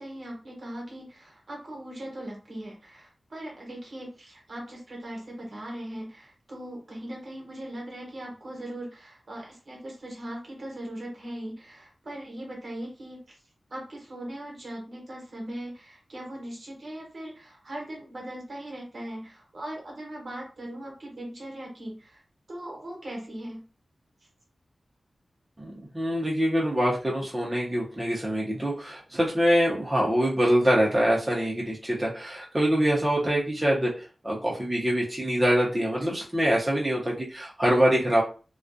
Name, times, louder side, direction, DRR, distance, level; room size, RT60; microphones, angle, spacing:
voice 1, 0.0-13.4 13.7-22.2 22.5-23.7, right 1 dB, 60° right, -1 dB, 1.0 m, -39 dB
voice 2, 25.6-38.2, equal, 20° right, -5 dB, 0.7 m, -24 dB
2.3 x 2.3 x 2.6 m, 0.36 s
wide cardioid pair, 70°, 0 cm